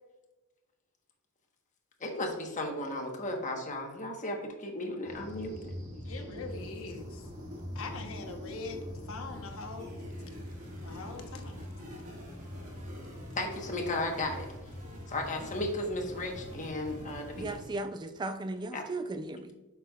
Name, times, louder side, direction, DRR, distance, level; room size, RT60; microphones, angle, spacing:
voice 1, 2.0-5.7 6.1-6.2 11.9-12.0 13.4-14.5 15.1-17.5 18.7-18.8, left 1 dB, 35° left, 2 dB, 1.2 m, -35 dB
sound 1, 5.0-17.6, left 1 dB, 70° right, 2.2 m, -43 dB
voice 2, 6.1-7.3 7.7-9.9 10.8-11.7, left 3 dB, 65° left, 4 dB, 1.0 m, -42 dB
voice 3, 17.4-19.5, right 2 dB, 20° right, 8 dB, 0.3 m, -36 dB
8.3 x 5.9 x 2.3 m, 1.1 s
head